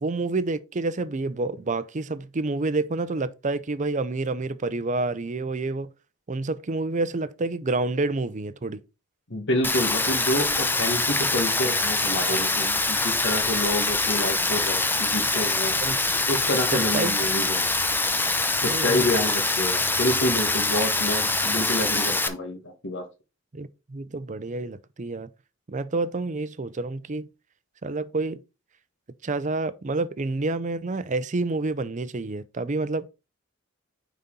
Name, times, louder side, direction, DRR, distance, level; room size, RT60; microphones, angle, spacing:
voice 1, 0.0-5.9 6.3-8.8 12.3-12.4 15.8-16.1 16.7-17.1 18.6-19.1 23.5-25.3 25.7-27.3 27.8-28.4 29.2-33.1, right 3 dB, 35° right, 0.6 m, -28 dB
voice 2, 9.3-15.7 16.3-17.7 18.6-23.1, left 1 dB, 60° left, 1.6 m, -28 dB
Rain, 9.6-22.3, left 2 dB, 10° left, 0.6 m, -24 dB
9.2 x 4.2 x 3.8 m
head